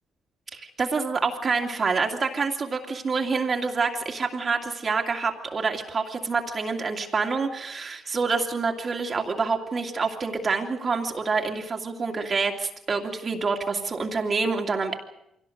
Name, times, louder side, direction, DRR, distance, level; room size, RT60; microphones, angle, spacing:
voice 1, 0.5-15.0, right 4 dB, 40° right, 1 dB, 2.5 m, -27 dB
24.0 x 17.5 x 7.9 m, 0.82 s
cardioid pair, 90°, 0 cm